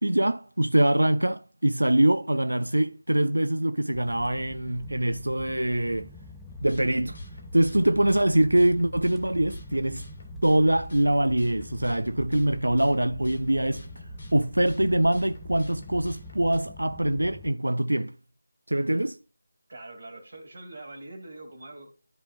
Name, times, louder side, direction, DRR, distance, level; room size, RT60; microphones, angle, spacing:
voice 1, 0.0-6.1 6.6-7.2 7.5-10.0 10.4-13.9 14.3-18.1 18.7-19.2, right 1 dB, 90° right, 0.3 m, -24 dB
sound 1, 3.9-17.5, left 1 dB, 5° left, 0.7 m, -46 dB
sound 2, 6.5-16.6, equal, 50° left, 2.3 m, -43 dB
voice 2, 19.7-22.0, right 2 dB, 50° right, 2.5 m, -43 dB
12.5 x 4.2 x 2.5 m
figure-of-eight pair, 160°, 0 cm